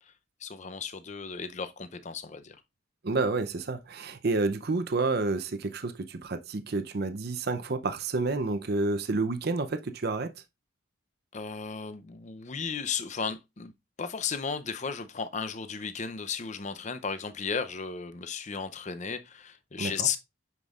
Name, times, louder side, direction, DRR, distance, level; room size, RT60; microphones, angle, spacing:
voice 1, 0.4-2.6 11.3-13.7 14.0-20.2, left 6 dB, 35° left, 0.6 m, -34 dB
voice 2, 3.0-10.3 19.8-20.1, right 3 dB, 50° right, 0.6 m, -29 dB
9.3 x 5.2 x 2.4 m
head